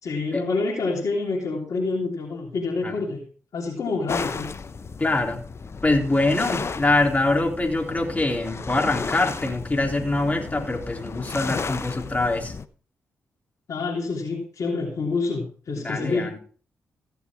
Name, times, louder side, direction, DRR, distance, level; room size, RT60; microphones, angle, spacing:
voice 1, 0.0-3.2 3.5-4.5 13.7-16.3, left 3 dB, 60° left, -4 dB, 3.2 m, -27 dB
sound 1, 4.1-12.7, left 4 dB, 45° left, 0.9 m, -34 dB
voice 2, 5.0-5.4 5.8-12.5 15.8-16.4, left 2 dB, 25° left, 1 dB, 3.8 m, -24 dB
15.5 x 7.0 x 4.8 m, 0.41 s
supercardioid pair, 45°, 6 cm